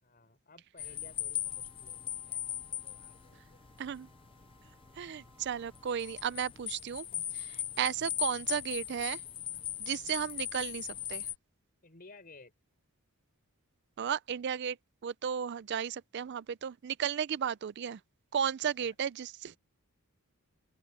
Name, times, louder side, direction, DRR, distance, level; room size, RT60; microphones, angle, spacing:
voice 1, 0.0-3.6 7.7-8.1 10.1-10.3 11.8-12.5 18.8-18.9, left 3 dB, 40° left, 4.7 m, -57 dB
sound 1, 0.8-11.3, left 10 dB, 25° left, 0.3 m, -39 dB
Wind instrument woodwind instrument, 1.4-6.5, right 2 dB, 10° right, 5.2 m, -66 dB
voice 2, 3.8-4.1 5.0-7.1 7.3-9.2 9.8-11.3 14.0-14.8 15.0-18.0 18.3-19.5, right 8 dB, 50° right, 0.4 m, -34 dB
open air
head